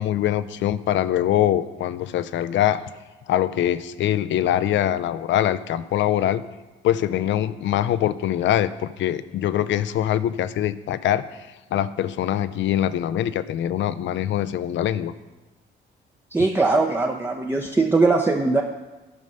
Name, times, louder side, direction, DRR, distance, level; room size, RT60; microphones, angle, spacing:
voice 1, 0.0-2.8 3.3-6.4 6.8-11.2 11.7-15.1, left 11 dB, 70° left, 15 dB, 0.5 m, -23 dB
voice 2, 16.3-18.6, right 3 dB, 10° right, 2 dB, 0.6 m, -20 dB
9.8 x 5.4 x 5.3 m, 1.2 s
cardioid pair, 90°, 20 cm